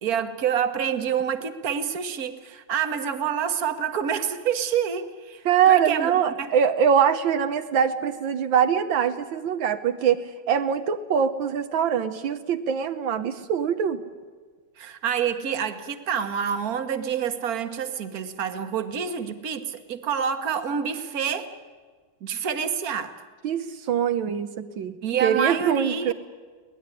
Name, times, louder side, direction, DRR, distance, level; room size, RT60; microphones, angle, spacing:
voice 1, 0.0-6.1 6.4-6.5 14.8-21.5 22.2-23.1 25.0-26.1, right 7 dB, 50° right, 8 dB, 1.8 m, -27 dB
voice 2, 5.4-14.0 23.4-26.1, right 8 dB, 80° right, 8 dB, 1.7 m, -23 dB
23.5 x 18.5 x 9.8 m, 1.5 s
omnidirectional pair, 2.1 m